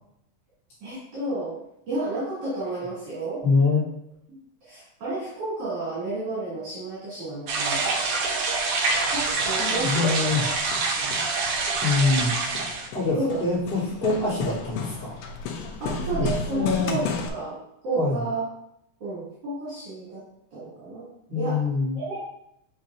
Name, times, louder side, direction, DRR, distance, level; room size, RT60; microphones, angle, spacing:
voice 1, 0.8-1.6 1.9-3.4 4.3-4.4 4.7-8.0 9.1-10.3 10.9-11.1 13.1-13.4 15.8-17.6 17.8-18.4 19.0-20.2 20.5-21.1 21.4-21.6 21.9-22.2, right 2 dB, 50° right, -10 dB, 3.6 m, -31 dB
voice 2, 3.4-3.8 9.6-10.4 11.8-12.3 12.9-15.2 16.1-17.0 18.0-18.2 21.3-22.0, left 3 dB, ahead, -12 dB, 2.1 m, -24 dB
sound 1, 7.5-12.9, right 3 dB, 75° right, 2.3 m, -26 dB
Hammer, 9.7-17.3, left 4 dB, 75° left, 1.5 m, -34 dB
7.4 x 5.8 x 2.5 m, 0.77 s
omnidirectional pair, 3.6 m